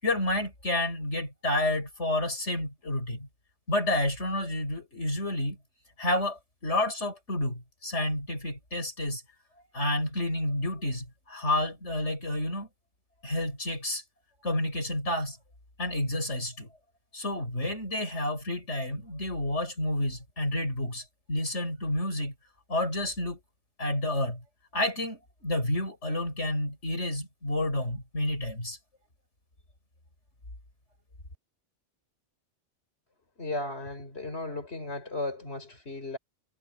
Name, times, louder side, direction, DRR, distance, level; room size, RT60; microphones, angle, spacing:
voice 1, 0.0-3.3 3.7-5.6 6.0-9.2 9.7-12.7 13.2-14.0 14.4-15.4 15.8-16.7 17.1-22.3 22.7-23.4 23.8-24.4 24.7-28.8, left 1 dB, 85° left, 6.6 m, -30 dB
voice 2, 33.4-36.2, left 2 dB, 65° left, 5.5 m, -35 dB
omnidirectional pair, 1.2 m